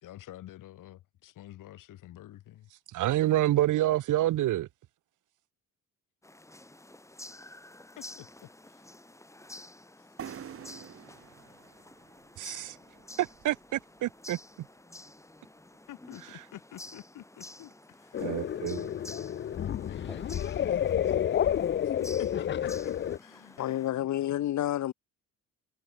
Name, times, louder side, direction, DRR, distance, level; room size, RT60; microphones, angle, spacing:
voice 1, 0.0-2.7 8.0-8.9 10.0-10.5 15.9-18.4 19.6-21.4 21.8-23.6 23.9-24.1, left 13 dB, 80° left, 2.4 m, -49 dB
voice 2, 2.9-4.7 12.4-12.8 13.2-14.4 18.2-18.9, right 14 dB, 70° right, 0.9 m, -27 dB
sound 1, 6.2-23.9, left 1 dB, 10° left, 4.3 m, -50 dB
sound 2, 10.2-13.8, right 9 dB, 45° right, 1.3 m, -47 dB
sound 3, 18.1-23.2, left 10 dB, 35° left, 0.5 m, -30 dB
voice 3, 23.6-24.9, left 13 dB, 60° left, 1.0 m, -29 dB
cardioid pair, 120°, 32 cm